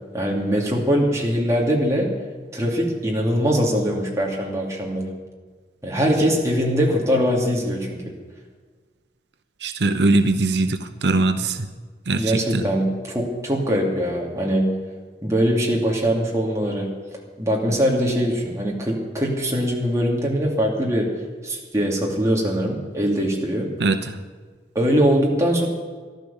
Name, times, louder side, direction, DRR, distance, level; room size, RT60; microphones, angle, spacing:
voice 1, 0.1-2.1 2.5-5.1 5.8-8.0 11.4-11.5 12.1-14.7 15.2-16.9 17.4-21.1 21.4-23.7 24.7-25.7, equal, 15° right, -2 dB, 2.7 m, -22 dB
voice 2, 9.6-11.7 12.1-12.7 23.8-24.2, right 2 dB, 85° right, 9 dB, 0.8 m, -21 dB
14.5 x 12.0 x 7.2 m, 1.5 s
head